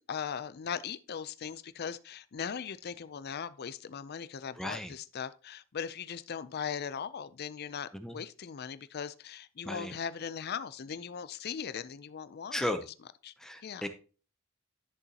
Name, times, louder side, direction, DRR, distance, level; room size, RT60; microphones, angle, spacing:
voice 1, 0.1-12.7 13.2-13.3 13.6-13.9, left 7 dB, 50° left, 0.5 m, -39 dB
voice 2, 4.6-4.9 7.9-8.2 9.6-9.9 12.5-12.8 13.4-13.9, left 1 dB, ahead, 0.6 m, -35 dB
11.0 x 6.9 x 2.8 m
head